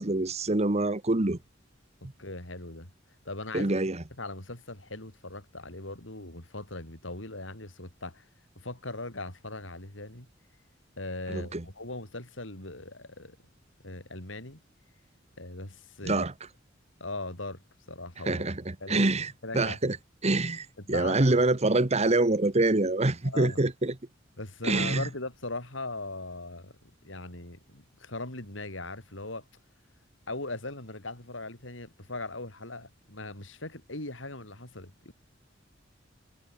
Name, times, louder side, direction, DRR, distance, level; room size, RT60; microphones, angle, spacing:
voice 1, 0.0-1.4 3.5-4.0 11.3-11.6 16.0-16.3 18.3-20.0 20.2-23.9 24.6-25.1, right 2 dB, 35° right, 1.3 m, -26 dB
voice 2, 2.0-2.9 3.2-3.7 4.2-8.3 8.6-10.3 11.0-13.4 13.8-14.6 15.4-16.3 17.0-17.6 17.9-18.4 18.8-19.1 19.4-19.8 20.9-21.4 23.2-23.6 24.4-26.7 27.0-29.5 30.3-35.1, left 2 dB, 80° left, 5.7 m, -39 dB
head